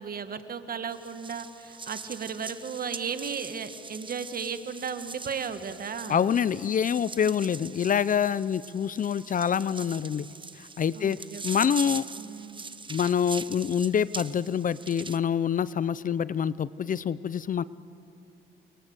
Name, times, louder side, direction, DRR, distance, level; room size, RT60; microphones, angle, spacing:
voice 1, 0.0-6.3 10.9-11.8 12.2-12.6, right 6 dB, 50° right, 10 dB, 1.9 m, -35 dB
sound 1, 0.9-15.2, right 4 dB, 25° right, 1.1 m, -42 dB
voice 2, 6.1-10.3 10.6-11.2 11.4-12.1 12.9-17.6, left 8 dB, 45° left, 18 dB, 0.6 m, -26 dB
29.0 x 23.5 x 8.1 m, 2.7 s
cardioid pair, 90°, 20 cm